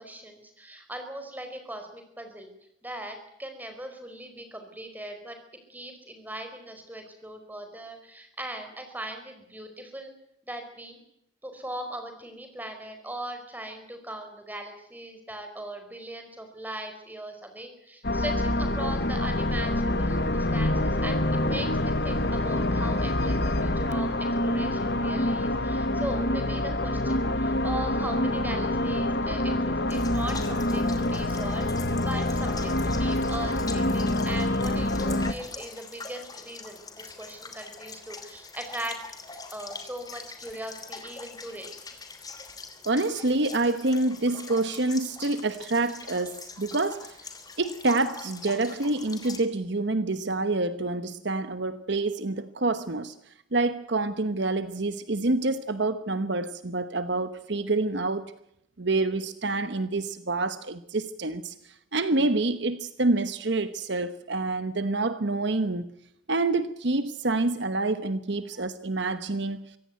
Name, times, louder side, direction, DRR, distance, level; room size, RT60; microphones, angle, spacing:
voice 1, 0.0-2.5 2.8-5.4 5.7-10.1 10.4-11.0 11.4-24.1 24.4-39.0 39.3-41.7, right 1 dB, 10° right, 4.9 m, -39 dB
sound 1, 18.0-35.3, left 1 dB, 55° left, 1.4 m, -26 dB
sound 2, 29.9-49.4, left 4 dB, 20° left, 3.0 m, -43 dB
voice 2, 42.9-47.2 47.6-53.1 53.5-58.3 58.8-65.8 66.3-69.6, right 2 dB, 55° right, 1.1 m, -27 dB
24.5 x 17.0 x 9.4 m
head